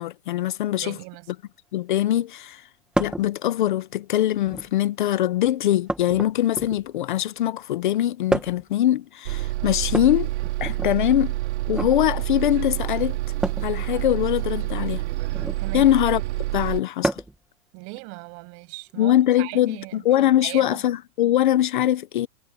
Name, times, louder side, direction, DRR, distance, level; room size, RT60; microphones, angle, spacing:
voice 1, 0.0-1.0 1.3-1.4 1.7-2.6 3.0-10.3 10.6-11.4 11.7-13.2 13.6-15.0 15.7-16.2 16.5-17.2 19.0-22.3, left 13 dB, 35° left, 0.6 m, -22 dB
voice 2, 0.8-1.3 15.6-15.9 17.7-20.0 20.4-20.8, right 32 dB, 30° right, 6.9 m, -38 dB
sound 1, 2.9-3.3 4.3-4.8 5.9-7.0 8.3-8.7 9.8-10.9 11.6-11.9 13.4-13.7 15.3-15.7 17.0-17.4 18.9-19.0 20.2-20.3, right 1 dB, ahead, 1.4 m, -29 dB
Bus, 9.2-16.8, right 17 dB, 50° right, 2.9 m, -28 dB
supercardioid pair, 170°, 45 cm